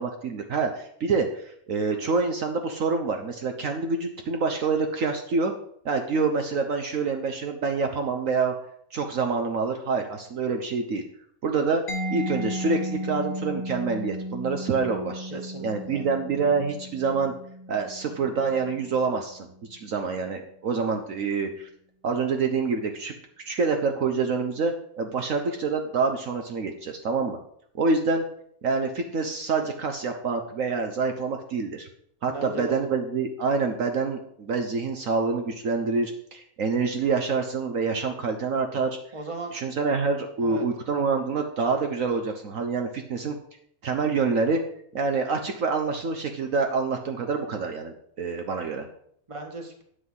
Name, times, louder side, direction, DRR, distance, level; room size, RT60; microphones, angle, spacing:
voice 1, 0.0-5.5 5.8-8.5 8.9-11.0 11.4-11.8 12.1-17.3 17.7-21.7 22.0-23.1 23.4-27.4 27.8-28.2 28.6-31.9 32.2-39.0 39.5-43.4 43.8-44.6 44.9-48.9, right 4 dB, 65° right, 5 dB, 1.3 m, -26 dB
Mallet percussion, 11.9-19.4, equal, 45° left, 1.5 m, -35 dB
voice 2, 15.3-16.1 32.3-32.8 39.1-39.6 40.4-40.6 49.3-49.8, right 2 dB, 20° right, 3 dB, 1.6 m, -37 dB
9.7 x 7.9 x 5.5 m, 0.66 s
omnidirectional pair, 1.6 m